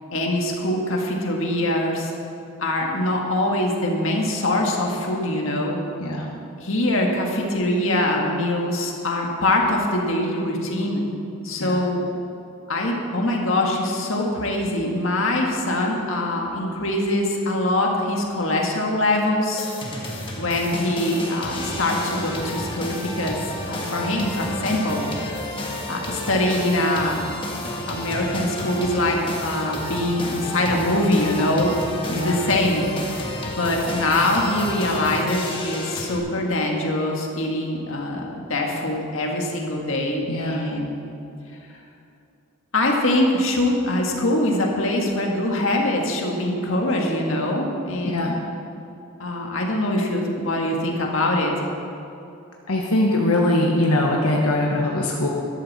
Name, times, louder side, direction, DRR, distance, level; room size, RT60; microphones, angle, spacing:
voice 1, 0.1-2.1 2.6-5.8 6.6-11.0 11.4-12.0 12.7-19.7 20.4-23.4 23.7-25.5 25.9-27.2 27.9-31.7 32.1-32.9 33.4-40.9 41.7-41.8 42.7-48.4 49.2-51.6, left 1 dB, 65° left, 0 dB, 1.8 m, -23 dB
sound 1, 19.6-36.2, left 1 dB, 25° left, 1.5 m, -31 dB
voice 2, 32.1-32.4 40.3-40.6 48.1-48.3 52.7-55.3, left 1 dB, 85° left, -1 dB, 1.3 m, -21 dB
13.5 x 12.0 x 4.3 m, 2.7 s
head